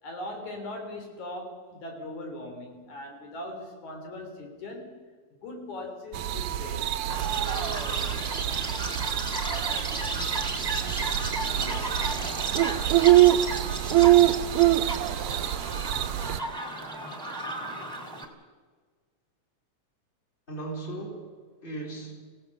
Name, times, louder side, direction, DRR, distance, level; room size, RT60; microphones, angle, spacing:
voice 1, 0.0-5.0 5.4-7.0, left 1 dB, 80° left, 3 dB, 5.0 m, -40 dB
sound 1, 6.1-16.4, right 14 dB, 75° right, 1.3 m, -24 dB
Chirp tweet, 7.1-18.2, right 2 dB, 10° right, 2.1 m, -34 dB
voice 2, 11.6-12.4 20.5-22.1, right 2 dB, 15° left, 1 dB, 3.9 m, -39 dB
26.0 x 17.0 x 6.9 m, 1.5 s
omnidirectional pair, 3.3 m